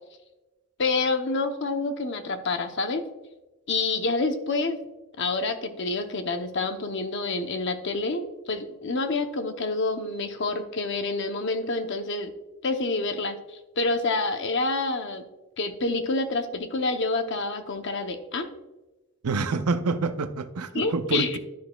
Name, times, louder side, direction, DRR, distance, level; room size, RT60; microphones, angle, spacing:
voice 1, 0.8-3.0 3.7-4.8 5.2-12.3 12.6-15.2 15.6-18.5 20.7-21.4, left 3 dB, 55° left, 0.8 m, -28 dB
voice 2, 19.2-21.4, right 3 dB, 85° right, 0.6 m, -27 dB
12.0 x 6.2 x 2.3 m
head